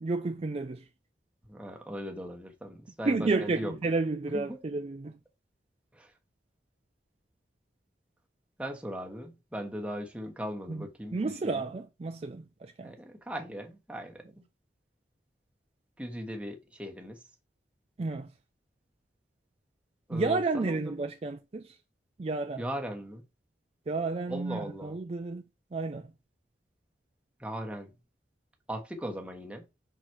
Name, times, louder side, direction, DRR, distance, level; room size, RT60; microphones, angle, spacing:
voice 1, 0.0-0.9 3.1-5.2 10.7-12.9 18.0-18.3 20.1-21.8 22.2-22.6 23.9-25.4 25.7-26.1, right 3 dB, 35° right, 0.4 m, -31 dB
voice 2, 1.5-3.7 4.3-4.6 5.9-6.1 8.6-11.7 12.8-14.4 16.0-17.2 20.1-20.9 22.6-23.2 24.3-25.0 27.4-27.9 28.7-29.6, equal, 5° right, 1.2 m, -39 dB
5.6 x 4.0 x 4.5 m
head